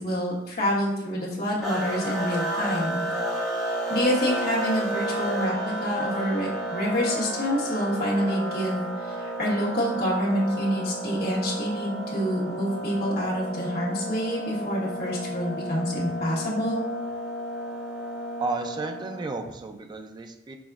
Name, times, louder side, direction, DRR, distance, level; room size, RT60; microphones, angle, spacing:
voice 1, 0.0-3.0 3.5-16.8, equal, 55° left, -6 dB, 1.4 m, -27 dB
sound 1, 1.6-19.5, right 1 dB, ahead, 1.7 m, -32 dB
voice 2, 18.4-20.6, right 3 dB, 25° right, 5 dB, 0.4 m, -33 dB
6.1 x 3.6 x 2.4 m, 0.86 s
head